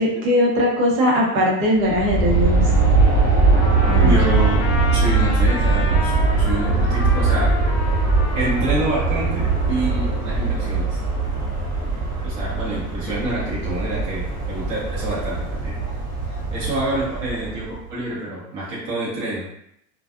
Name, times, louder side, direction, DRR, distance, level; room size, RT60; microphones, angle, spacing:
voice 1, 0.0-2.9 3.9-4.1, left 1 dB, 75° right, -3 dB, 1.1 m, -20 dB
Aircraft, 1.8-17.8, right 3 dB, 20° right, 0.4 m, -20 dB
Trumpet, 3.5-10.6, left 3 dB, 55° left, 0.7 m, -32 dB
voice 2, 4.0-4.6 4.9-7.5 8.3-11.0 12.2-15.8 16.5-19.4, right 2 dB, 40° right, -8 dB, 1.1 m, -27 dB
2.5 x 2.3 x 2.4 m, 0.77 s
supercardioid pair, 125°, 44 cm